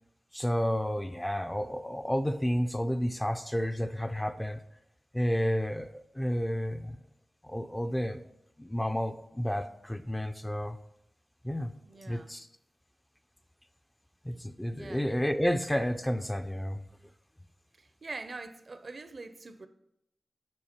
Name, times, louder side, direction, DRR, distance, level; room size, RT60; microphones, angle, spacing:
voice 1, 0.3-4.6 5.1-7.0 7.4-8.2 8.6-10.8 11.4-11.7 12.1-12.5 14.2-16.8, equal, 10° left, 8 dB, 0.4 m, -31 dB
voice 2, 11.9-12.3 14.7-15.1 17.8-19.7, right 3 dB, 55° right, 11 dB, 0.6 m, -44 dB
7.6 x 4.8 x 4.3 m, 0.81 s
wide cardioid pair, 80°, 0 cm